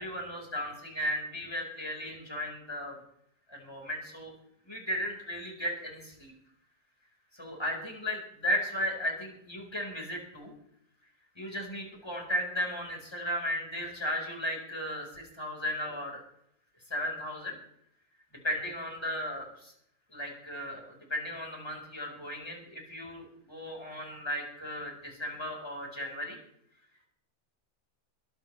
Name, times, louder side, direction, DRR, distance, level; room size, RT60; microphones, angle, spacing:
voice 1, 0.0-3.0 3.5-4.3 4.7-6.3 7.3-10.5 11.4-16.2 16.9-17.6 18.4-19.7 20.1-26.4, equal, 15° left, 0 dB, 4.6 m, -35 dB
23.0 x 12.5 x 3.3 m, 0.73 s
omnidirectional pair, 1.6 m